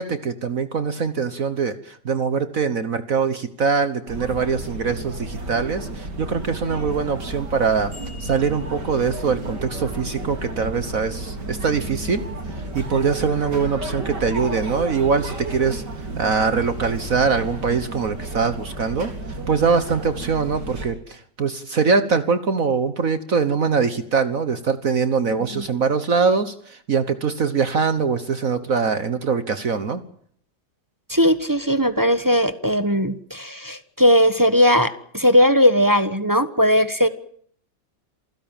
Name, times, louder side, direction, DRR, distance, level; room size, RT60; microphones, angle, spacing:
voice 1, 0.0-7.9 8.2-12.2 12.5-15.8 16.2-30.0, right 5 dB, 55° right, 11 dB, 1.6 m, -23 dB
sound 1, 4.1-20.9, right 2 dB, 75° right, 4.6 m, -32 dB
voice 2, 25.3-25.6 31.1-37.1, equal, 15° right, 11 dB, 1.1 m, -18 dB
27.5 x 16.5 x 9.1 m, 0.62 s
omnidirectional pair, 1.9 m